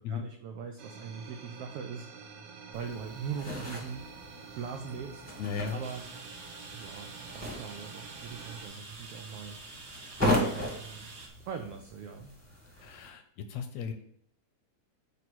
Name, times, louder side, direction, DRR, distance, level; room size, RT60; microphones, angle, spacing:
voice 1, 0.0-2.1 2.7-4.0 4.6-5.2 5.7-6.0 6.7-7.1 7.3-9.6 10.4-11.0 11.5-12.3, right 6 dB, 90° right, 5 dB, 1.3 m, -40 dB
sound 1, 0.8-8.7, right 5 dB, 65° right, 1.8 m, -48 dB
sound 2, 2.7-13.1, left 1 dB, 10° left, 0.7 m, -37 dB
voice 2, 5.4-5.8 12.8-13.9, left 6 dB, 75° left, 7 dB, 1.7 m, -36 dB
sound 3, 5.8-11.3, right 3 dB, 50° right, 1.5 m, -47 dB
9.2 x 3.1 x 6.0 m, 0.68 s
omnidirectional pair, 3.4 m